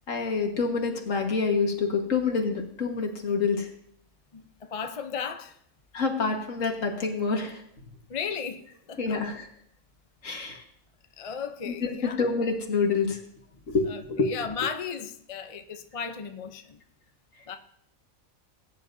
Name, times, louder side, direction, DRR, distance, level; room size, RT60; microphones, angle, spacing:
voice 1, 0.1-3.7 5.9-7.6 9.0-9.5 10.2-10.6 11.7-13.2 13.7-14.3, left 4 dB, 70° left, 2.0 m, -27 dB
voice 2, 4.3-5.6 8.1-9.2 11.2-12.2 13.9-16.8 17.5-17.6, left 6 dB, 35° left, 0.6 m, -35 dB
19.5 x 10.0 x 2.7 m
omnidirectional pair, 1.4 m